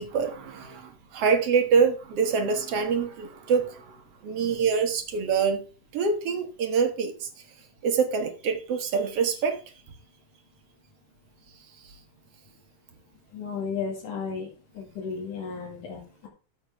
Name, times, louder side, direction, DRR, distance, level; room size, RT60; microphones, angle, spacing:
voice 1, 0.0-4.0 4.2-5.6 5.9-7.3 7.8-9.6, right 5 dB, 55° right, 2.1 m, -25 dB
voice 2, 13.3-14.5 14.8-16.3, left 5 dB, 90° left, 3.6 m, -34 dB
13.5 x 7.2 x 3.5 m
omnidirectional pair, 3.6 m